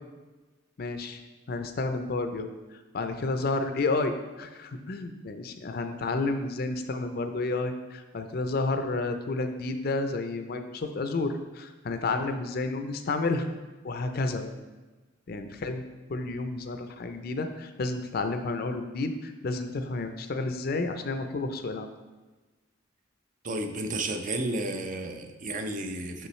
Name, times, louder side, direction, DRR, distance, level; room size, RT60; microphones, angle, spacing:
voice 1, 0.8-1.2 1.5-2.5 2.9-13.5 13.8-14.5 15.3-15.8 16.1-21.9, left 3 dB, 50° left, 7 dB, 0.5 m, -31 dB
voice 2, 23.4-26.3, right 2 dB, 40° right, 6 dB, 0.5 m, -32 dB
5.9 x 5.5 x 3.1 m, 1.2 s
head